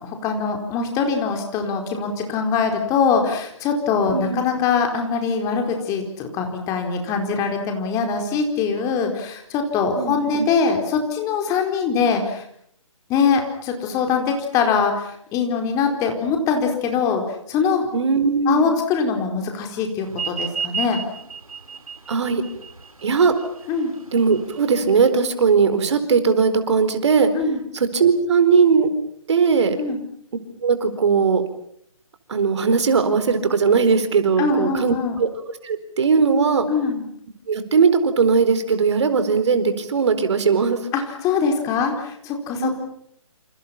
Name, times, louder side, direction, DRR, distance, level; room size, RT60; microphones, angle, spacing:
voice 1, 0.0-12.4 13.1-17.9 18.5-21.0 23.7-23.9 27.4-27.6 29.8-30.0 34.4-35.2 36.7-37.0 40.9-42.7, left 5 dB, 20° left, 4 dB, 4.4 m, -22 dB
voice 2, 4.1-4.4 10.0-10.2 17.9-18.7 22.1-22.4 23.0-23.3 24.1-27.3 27.7-28.9 29.3-29.8 30.6-31.4 32.3-35.3 35.6-36.7 37.5-40.8 42.6-42.7, right 5 dB, 55° right, 10 dB, 4.3 m, -19 dB
sound 1, 20.1-25.1, right 6 dB, 90° right, 3.3 m, -32 dB
28.5 x 28.0 x 5.9 m, 0.68 s
figure-of-eight pair, 145°, 18 cm